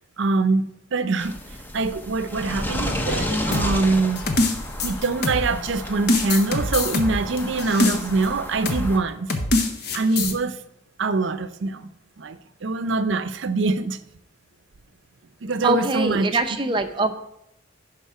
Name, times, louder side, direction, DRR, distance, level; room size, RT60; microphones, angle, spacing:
voice 1, 0.2-0.7 0.9-1.4 1.7-4.3 4.8-9.3 9.9-10.6 11.0-11.9 12.2-14.0 15.4-16.4, right 3 dB, 75° right, 0.5 m, -24 dB
sound 1, 1.2-9.0, left 1 dB, 10° left, 0.7 m, -31 dB
sound 2, 3.5-5.7 6.1-8.3 8.7-8.9 9.3-10.3, left 2 dB, 55° left, 0.9 m, -24 dB
voice 2, 15.6-17.1, right 2 dB, 25° right, 0.5 m, -23 dB
11.0 x 5.0 x 4.7 m
head